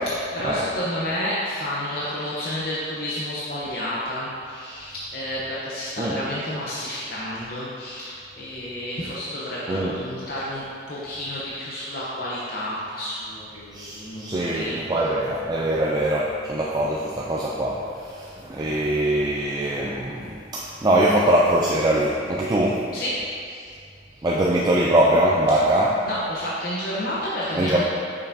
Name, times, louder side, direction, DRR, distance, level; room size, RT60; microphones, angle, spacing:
voice 1, 0.0-15.1 22.9-23.2 23.5-23.6 25.5-25.6 26.1-27.8, left 1 dB, 50° left, -7 dB, 0.8 m, -30 dB
voice 2, 13.7-17.9 18.2-20.3 20.5-22.8 24.2-25.9 27.5-27.8, right 1 dB, 20° right, -4 dB, 0.3 m, -22 dB
6.7 x 5.5 x 2.7 m, 2.3 s
head